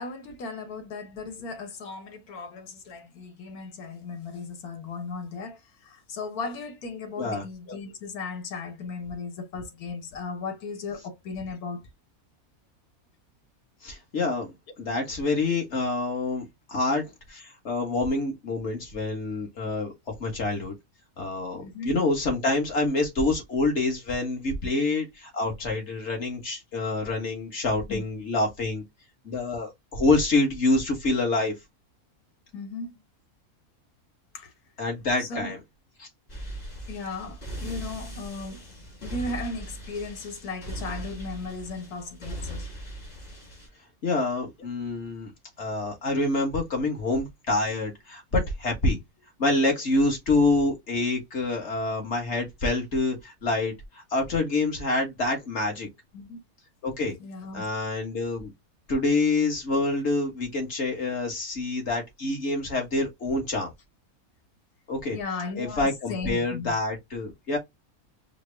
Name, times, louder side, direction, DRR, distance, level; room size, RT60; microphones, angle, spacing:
voice 1, 0.0-11.8 21.5-22.0 27.9-28.0 32.5-33.0 34.3-34.5 35.2-35.6 36.9-38.6 39.0-42.7 56.1-56.4 57.2-57.6 65.1-66.8, left 4 dB, 80° left, 1.5 m, -36 dB
voice 2, 13.8-19.9 20.2-20.7 21.2-28.8 29.2-31.5 34.8-35.6 36.0-36.1 44.0-45.3 45.6-49.0 49.4-55.9 56.8-57.1 57.5-58.5 58.9-63.7 64.9-65.2 65.6-67.6, left 2 dB, 50° left, 1.7 m, -27 dB
sound 1, 36.3-43.7, right 1 dB, 30° left, 1.3 m, -39 dB
4.9 x 2.1 x 3.4 m
omnidirectional pair, 1.5 m